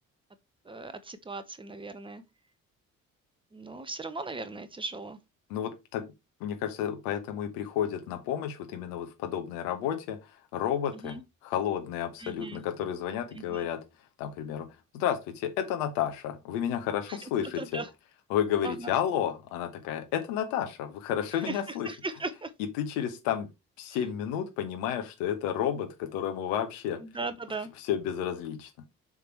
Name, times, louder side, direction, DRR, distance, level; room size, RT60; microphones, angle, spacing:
voice 1, 0.6-2.2 3.5-5.2 11.0-11.2 12.2-12.6 13.3-13.7 17.1-17.2 17.6-17.9 18.6-18.9 21.3-22.5 27.0-27.7, right 3 dB, 10° right, 0.9 m, -38 dB
voice 2, 5.5-6.0 6.4-13.8 14.2-14.7 14.9-17.8 18.3-21.9 22.8-23.5 23.8-27.0 27.8-28.7, left 9 dB, 65° left, 1.1 m, -31 dB
7.2 x 3.6 x 4.5 m
figure-of-eight pair, 45°, 41 cm